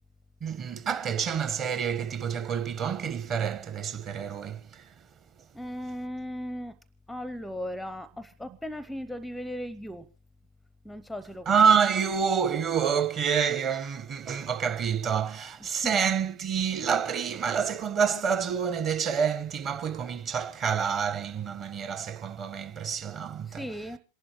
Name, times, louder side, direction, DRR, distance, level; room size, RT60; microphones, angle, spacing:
voice 1, 0.4-4.9 11.5-23.6, right 7 dB, 30° right, 1.4 m, -27 dB
voice 2, 5.5-6.8 7.1-10.1 10.8-11.7 15.8-16.0 23.5-24.0, equal, ahead, 0.7 m, -37 dB
27.0 x 11.5 x 3.2 m
figure-of-eight pair, 90°, 0 cm